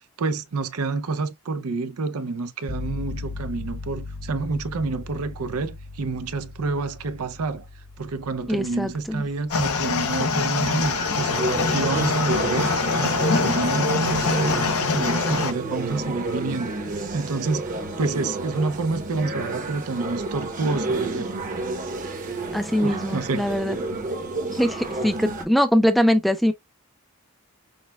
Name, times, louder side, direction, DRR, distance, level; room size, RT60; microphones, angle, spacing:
voice 1, 0.2-7.7 8.0-21.5 22.8-23.6, right 3 dB, 80° right, 0.5 m, -28 dB
sound 1, 2.7-13.2, left 3 dB, 60° left, 1.3 m, -39 dB
voice 2, 8.5-9.2 22.5-23.8 24.5-26.5, equal, ahead, 0.3 m, -22 dB
sound 2, 9.5-15.5, left 4 dB, 80° left, 0.7 m, -24 dB
sound 3, 10.8-25.4, right 2 dB, 35° right, 0.9 m, -30 dB
6.3 x 2.2 x 2.2 m
head